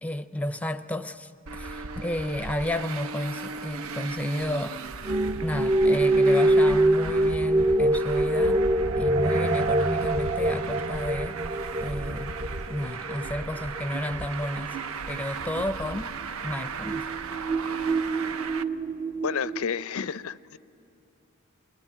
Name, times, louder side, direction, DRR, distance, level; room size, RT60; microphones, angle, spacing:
voice 1, 0.0-4.8 5.4-8.6 9.0-11.4 11.8-12.4 12.7-14.8 15.1-17.1, left 1 dB, 5° left, 0.5 m, -32 dB
Traffic noise roadway noise, 1.5-18.6, right 4 dB, 75° right, 0.7 m, -36 dB
sound 1, 5.1-19.6, right 1 dB, 30° right, 0.7 m, -25 dB
voice 2, 19.2-20.6, left 6 dB, 75° left, 0.5 m, -30 dB
27.0 x 22.0 x 10.0 m
head